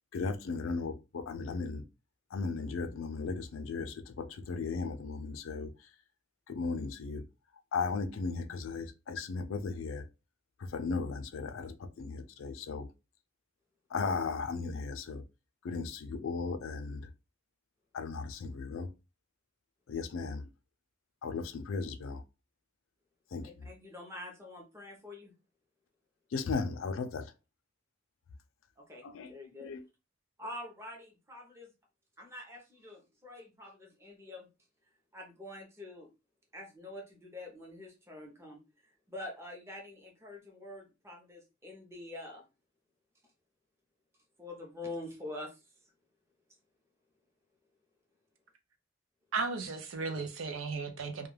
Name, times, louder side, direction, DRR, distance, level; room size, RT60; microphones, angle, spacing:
voice 1, 0.1-1.8 2.3-5.9 6.5-7.2 7.7-10.0 10.6-12.9 13.9-15.2 15.6-17.1 17.9-18.9 19.9-20.5 21.2-22.2 23.3-23.7 26.3-27.3 29.0-29.3 29.6-29.8, left 4 dB, 75° left, 0.4 m, -36 dB
voice 2, 23.4-25.3 28.8-29.7 30.4-31.7 32.2-34.5 35.1-36.1 36.5-38.6 39.1-42.4 44.4-45.6, left 1 dB, 15° right, 0.6 m, -46 dB
voice 3, 49.3-51.3, right 4 dB, 75° right, 0.5 m, -35 dB
2.3 x 2.2 x 3.1 m
head